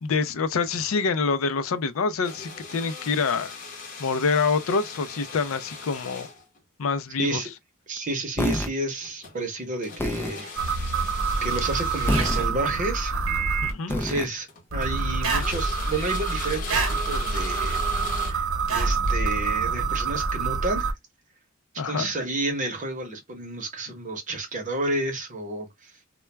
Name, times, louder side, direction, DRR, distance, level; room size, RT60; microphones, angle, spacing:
voice 1, 0.0-3.5 4.0-6.3 6.8-7.4 13.6-14.0 21.8-22.1, left 4 dB, 80° left, 0.4 m, -26 dB
sound 1, 2.2-6.6 8.9-9.4 9.8-12.5 13.6-13.7 14.2-15.1 15.3-18.3, left 4 dB, 40° left, 0.8 m, -39 dB
voice 2, 7.2-7.5 7.9-10.9 11.4-13.1 13.9-17.8 18.2-20.9 21.8-26.1, right 2 dB, 40° right, 0.8 m, -31 dB
sound 2, 8.4-8.7 10.0-10.3 12.1-12.5 13.9-14.3, left 1 dB, 10° left, 0.4 m, -26 dB
sound 3, 10.6-13.7 14.7-20.9, right 4 dB, 80° right, 0.8 m, -26 dB
2.2 x 2.2 x 3.1 m
head